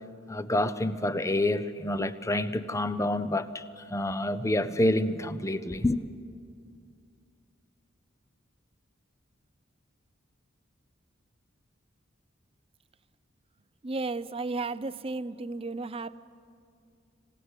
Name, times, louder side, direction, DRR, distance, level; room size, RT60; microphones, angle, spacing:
voice 1, 0.3-6.0, left 1 dB, 15° left, 0.7 m, -28 dB
voice 2, 13.8-16.2, right 3 dB, 30° right, 0.5 m, -34 dB
27.0 x 17.5 x 8.2 m
head